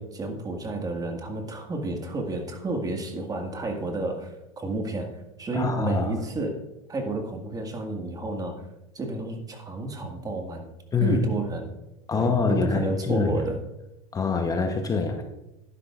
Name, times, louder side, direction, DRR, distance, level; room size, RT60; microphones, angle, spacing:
voice 1, 0.0-5.1 5.4-6.6 6.9-8.6 8.9-10.7 11.0-11.7 12.1-13.6, right 2 dB, 20° right, 3 dB, 1.9 m, -31 dB
voice 2, 5.5-6.1 10.9-11.2 12.1-12.8 13.1-13.3 14.1-15.2, left 4 dB, 20° left, 5 dB, 1.0 m, -24 dB
11.0 x 11.0 x 2.5 m, 0.92 s
hypercardioid pair, 100°, 17 cm